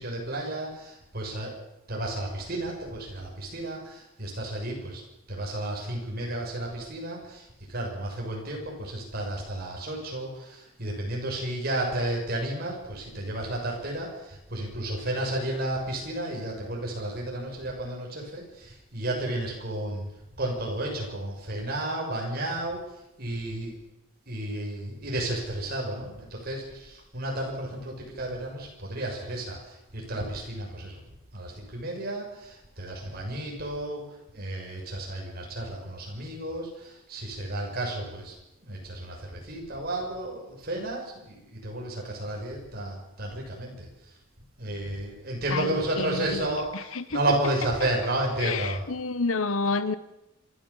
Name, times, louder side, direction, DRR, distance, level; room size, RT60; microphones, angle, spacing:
voice 1, 0.0-1.6 1.9-5.0 5.3-20.0 20.4-22.8 23.2-23.8 24.3-31.0 31.3-34.0 34.3-38.3 38.6-43.9 44.6-48.9, right 1 dB, 45° right, 0 dB, 6.7 m, -32 dB
voice 2, 45.5-46.5 46.7-47.2 48.4-49.9, left 3 dB, 75° left, 15 dB, 1.1 m, -29 dB
26.5 x 13.5 x 7.3 m, 0.89 s
head